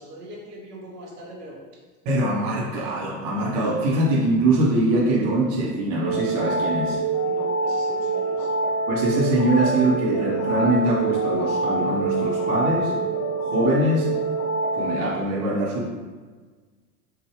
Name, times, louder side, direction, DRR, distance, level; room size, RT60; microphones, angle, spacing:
voice 1, 0.0-1.6 7.2-8.5, equal, 80° right, -4 dB, 1.1 m, -41 dB
voice 2, 2.0-7.0 8.9-12.9 13.5-14.1 14.7-15.9, right 1 dB, 55° right, -3 dB, 1.0 m, -23 dB
sound 1, 6.0-15.2, right 3 dB, 30° left, 0.6 m, -25 dB
4.7 x 2.2 x 3.1 m, 1.4 s
hypercardioid pair, 95°, 46 cm